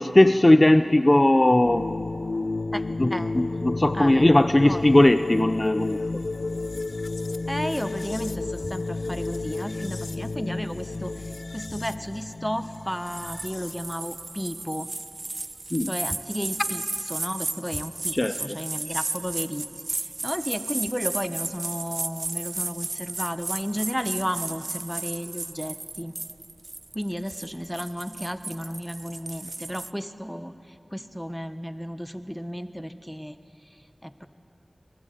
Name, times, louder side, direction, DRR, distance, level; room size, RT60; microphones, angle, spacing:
voice 1, 0.0-1.9 3.0-6.2 15.7-15.9 18.1-18.6, left 1 dB, 35° left, 11 dB, 0.7 m, -19 dB
sound 1, 1.6-13.9, left 3 dB, 85° left, 0.7 m, -32 dB
voice 2, 7.5-11.2 11.5-14.9 15.9-16.8 17.1-26.1 26.9-33.3 34.0-34.3, equal, ahead, 10 dB, 1.3 m, -33 dB
sound 2, 13.1-29.9, right 2 dB, 65° right, 0.5 m, -34 dB
27.5 x 20.0 x 8.6 m, 2.6 s
wide cardioid pair, 40°, 0 cm